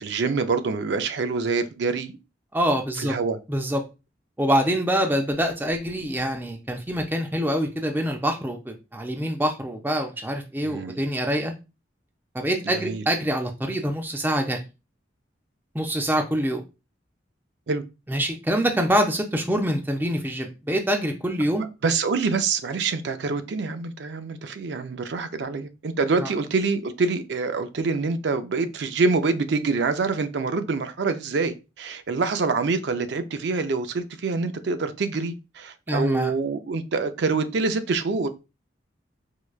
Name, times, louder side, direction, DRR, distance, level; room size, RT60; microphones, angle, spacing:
voice 1, 0.0-2.2 3.0-3.4 10.6-11.0 12.6-13.0 17.7-17.8 21.8-38.3, right 4 dB, 65° right, 0.4 m, -26 dB
voice 2, 2.5-3.1 3.5-3.8 4.4-11.5 12.3-14.6 15.7-16.6 18.1-21.7 26.2-26.3 35.9-36.3, equal, 10° right, 0.5 m, -25 dB
4.6 x 2.2 x 2.3 m
head